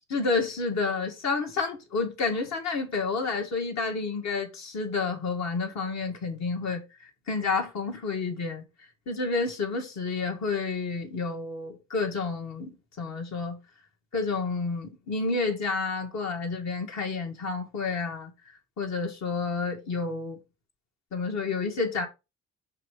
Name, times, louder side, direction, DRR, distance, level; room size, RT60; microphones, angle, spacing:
voice 1, 0.1-6.8 7.3-8.6 9.1-13.6 14.1-18.3 18.8-20.4 21.1-22.1, left 4 dB, 65° left, 2.2 m, -30 dB
5.8 x 3.8 x 5.0 m
cardioid pair, 90°, 30 cm